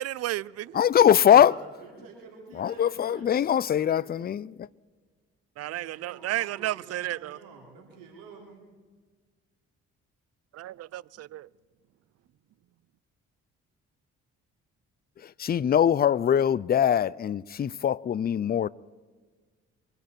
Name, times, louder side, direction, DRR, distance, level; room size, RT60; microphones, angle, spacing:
voice 1, 0.0-0.8 5.6-7.4 10.5-11.5, right 14 dB, 45° right, 0.5 m, -32 dB
voice 2, 0.7-1.5 2.6-4.7 15.4-18.7, left 9 dB, 30° left, 0.5 m, -22 dB
voice 3, 1.3-4.3 5.6-8.6, right 4 dB, 75° right, 3.3 m, -49 dB
24.0 x 10.5 x 4.5 m
hypercardioid pair, 45°, 34 cm